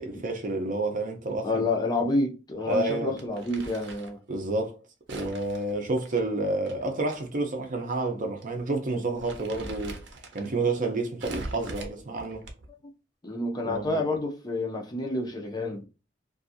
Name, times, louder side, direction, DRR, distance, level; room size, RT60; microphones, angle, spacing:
voice 1, 0.0-1.6 2.7-3.2 4.3-4.8 5.1-10.0 10.3-12.5 13.6-14.1, right 2 dB, 45° right, 0.6 m, -29 dB
voice 2, 1.4-4.2 5.1-5.3 11.7-11.9 13.2-15.8, left 2 dB, 25° left, 0.5 m, -29 dB
Crumpling crinkling, 3.2-4.2 5.1-7.2 7.5-7.6 8.4-8.6 8.9-10.5 11.2-12.8, right 2 dB, 85° right, 0.6 m, -42 dB
2.5 x 2.3 x 2.5 m
head